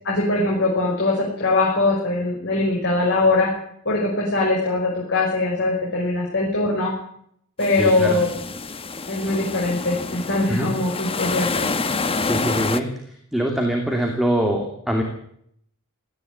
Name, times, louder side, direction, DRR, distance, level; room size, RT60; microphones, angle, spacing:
voice 1, 0.0-3.5 3.9-6.9 7.6-8.3 9.1-11.7, left 2 dB, 55° left, -3 dB, 5.5 m, -21 dB
sound 1, 7.6-12.8, left 3 dB, 25° left, 1.0 m, -27 dB
voice 2, 7.8-8.2 10.5-10.7 12.2-15.0, right 1 dB, ahead, 1 dB, 2.8 m, -24 dB
18.0 x 14.5 x 9.9 m, 0.69 s
head